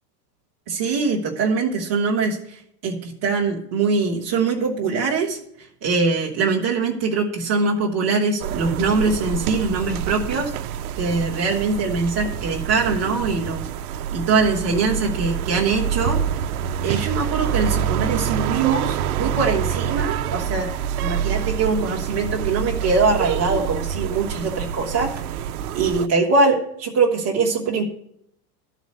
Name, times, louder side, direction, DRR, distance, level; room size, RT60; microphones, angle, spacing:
voice 1, 0.7-2.4 2.8-5.4 5.8-10.5 11.0-13.6 14.1-16.2 16.8-20.7 21.0-25.1 25.7-27.8, right 4 dB, 10° right, -4 dB, 0.3 m, -22 dB
sound 1, 8.4-26.1, right 8 dB, 65° right, 0.6 m, -26 dB
12.5 x 4.1 x 7.8 m, 0.70 s
supercardioid pair, 170°, 47 cm